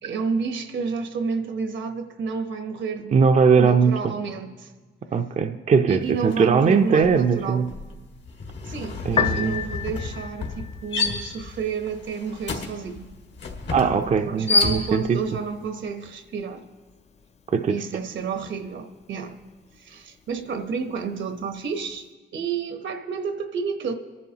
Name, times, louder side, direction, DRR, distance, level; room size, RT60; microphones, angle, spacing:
voice 1, 0.0-3.2 3.6-4.7 5.9-7.8 8.7-13.1 13.9-16.7 17.7-19.4 19.8-22.1 22.3-23.9, right 5 dB, 75° right, 7 dB, 1.0 m, -30 dB
voice 2, 3.1-4.1 5.1-7.7 9.0-9.6 13.7-15.2 17.5-17.8, right 5 dB, 40° right, 6 dB, 0.5 m, -20 dB
sound 1, 6.3-6.5 6.8-15.3, left 3 dB, 70° left, 1.9 m, -29 dB
Piano, 9.0-22.0, left 7 dB, 35° left, 0.4 m, -37 dB
23.0 x 11.0 x 2.9 m, 1.3 s
cardioid pair, 95°, 19 cm